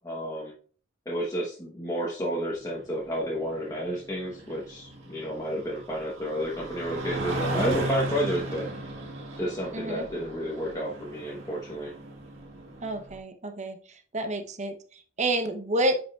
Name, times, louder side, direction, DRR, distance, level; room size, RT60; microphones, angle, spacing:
voice 1, 0.0-0.5 1.0-8.7 9.4-11.9, equal, 15° left, -4 dB, 1.1 m, -31 dB
sound 1, 2.6-13.2, right 1 dB, 80° right, 1.7 m, -36 dB
voice 2, 9.7-10.1 12.8-13.8 14.1-16.0, right 1 dB, 35° right, 7 dB, 0.9 m, -29 dB
10.0 x 5.2 x 2.4 m, 0.43 s
head